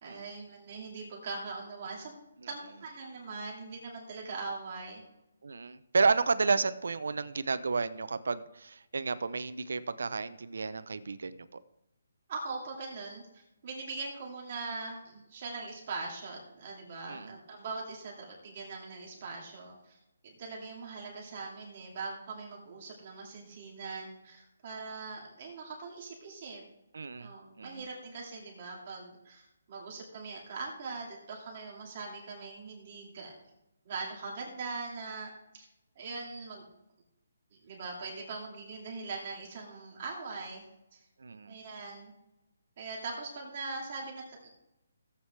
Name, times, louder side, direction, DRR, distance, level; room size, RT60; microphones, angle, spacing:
voice 1, 0.0-2.1 2.5-5.0 12.3-20.0 20.2-26.6 27.2-33.3 33.8-35.7 36.0-36.6 37.5-40.6 40.9-41.0 41.5-42.1 42.8-44.5, right 3 dB, 30° right, -2 dB, 2.2 m, -41 dB
voice 2, 5.4-11.6 17.1-17.4 26.9-27.3 27.6-27.8 41.2-41.6, right 4 dB, 70° right, 13 dB, 0.6 m, -31 dB
15.5 x 8.2 x 3.3 m, 0.89 s
hypercardioid pair, 175°, 0 cm